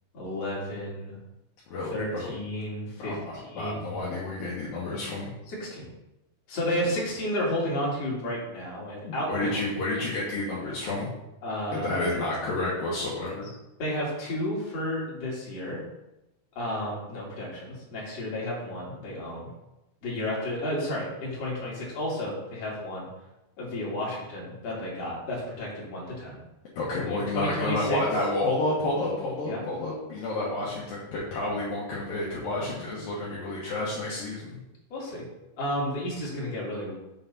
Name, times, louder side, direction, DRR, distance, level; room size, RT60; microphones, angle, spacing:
voice 1, 0.1-1.2 1.9-3.2 3.4-4.0 5.5-5.9 6.5-9.7 11.4-12.2 13.3-13.4 13.8-15.8 16.5-19.5 20.0-23.1 23.6-26.4 27.1-28.0 29.5-29.6 34.9-35.2 35.6-36.9, left 1 dB, 45° left, -6 dB, 3.0 m, -32 dB
voice 2, 1.7-2.3 3.0-5.3 9.0-11.1 11.7-13.5 26.8-34.6, left 2 dB, 70° left, -7 dB, 2.8 m, -30 dB
6.9 x 3.9 x 5.4 m, 0.93 s
omnidirectional pair, 4.5 m